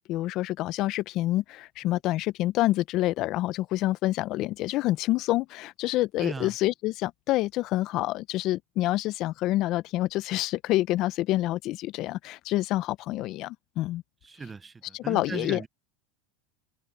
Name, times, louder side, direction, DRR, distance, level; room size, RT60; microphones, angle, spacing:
voice 1, 0.1-14.0 14.9-15.6, left 16 dB, 50° left, 0.6 m, -27 dB
voice 2, 6.2-6.6 14.2-15.7, right 4 dB, 15° right, 0.6 m, -37 dB
supercardioid pair, 115°, 0 cm